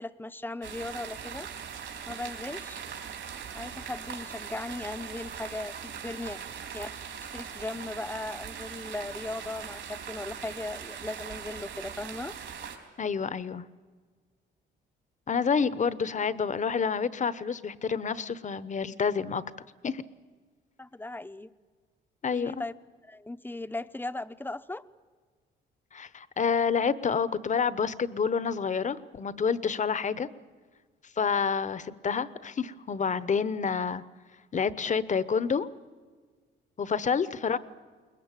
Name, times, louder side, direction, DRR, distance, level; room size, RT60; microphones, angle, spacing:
voice 1, 0.0-1.5 2.1-2.8 3.5-6.4 6.7-6.9 7.3-12.3 20.8-21.5 22.3-22.7 23.0-24.8, left 2 dB, 10° left, 12 dB, 0.8 m, -37 dB
sound 1, 0.6-12.8, right 7 dB, 65° right, 4.0 m, -41 dB
voice 2, 13.0-13.6 15.3-19.4 19.8-20.0 22.2-22.6 25.9-30.3 31.2-34.0 34.5-35.7 36.8-37.6, left 6 dB, 40° left, 16 dB, 1.0 m, -28 dB
22.0 x 20.5 x 9.1 m, 1.5 s
cardioid pair, 90°, 20 cm